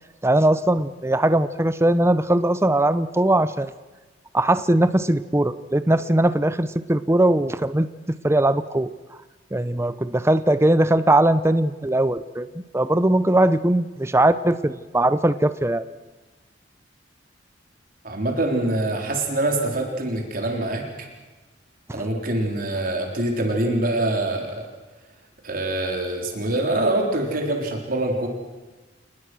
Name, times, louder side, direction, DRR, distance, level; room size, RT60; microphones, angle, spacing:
voice 1, 0.2-3.7 4.3-7.9 8.2-8.9 9.5-12.5 12.7-15.8 21.9-22.0, right 1 dB, 15° right, 13 dB, 0.7 m, -20 dB
voice 2, 18.0-20.9 21.9-24.7 25.4-28.3, right 1 dB, 50° right, 2 dB, 3.9 m, -24 dB
28.5 x 19.5 x 6.3 m, 1.2 s
head